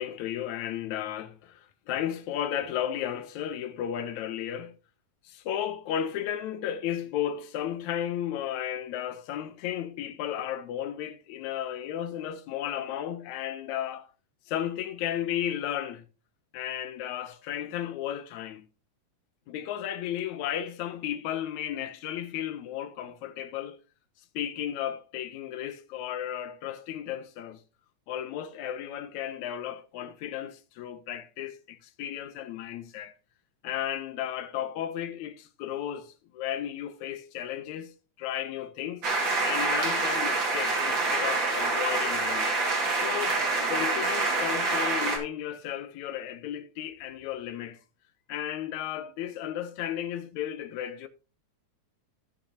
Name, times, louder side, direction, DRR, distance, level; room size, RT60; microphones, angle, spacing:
voice 1, 0.0-4.8 5.2-14.1 14.5-16.1 16.5-18.7 19.5-23.8 24.3-27.6 28.1-33.1 33.6-39.1 39.4-42.5 43.0-43.4 43.7-47.8 48.3-51.1, left 10 dB, 75° left, 2.1 m, -34 dB
sound 1, 39.0-45.2, right 3 dB, 40° right, 2.5 m, -26 dB
15.0 x 6.3 x 2.9 m
omnidirectional pair, 3.6 m